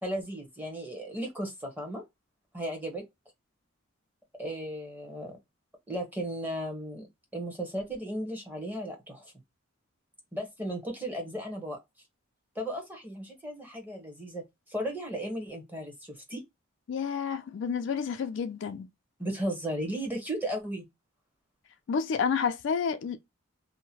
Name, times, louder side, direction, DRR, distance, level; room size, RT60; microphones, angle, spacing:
voice 1, 0.0-2.0 2.5-3.0 4.4-5.3 5.9-7.1 7.3-9.3 10.3-11.8 12.5-14.4 14.7-16.4 19.2-20.8, right 1 dB, 10° right, 0.9 m, -35 dB
voice 2, 16.9-18.9 21.9-23.2, left 6 dB, 60° left, 0.3 m, -30 dB
2.7 x 2.0 x 2.8 m
head